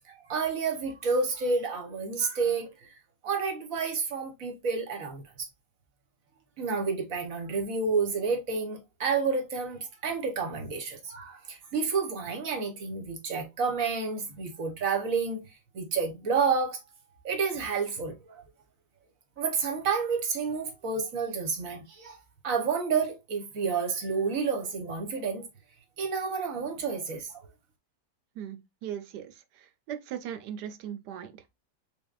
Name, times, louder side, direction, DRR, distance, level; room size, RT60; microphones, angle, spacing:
voice 1, 0.1-2.7 3.2-5.5 6.6-15.4 15.7-16.8 17.2-18.4 19.4-22.2 22.4-25.4 26.0-27.3, right 5 dB, 60° right, 1.2 m, -30 dB
voice 2, 28.4-31.4, right 9 dB, 85° right, 1.2 m, -39 dB
3.7 x 3.4 x 2.3 m
omnidirectional pair, 1.8 m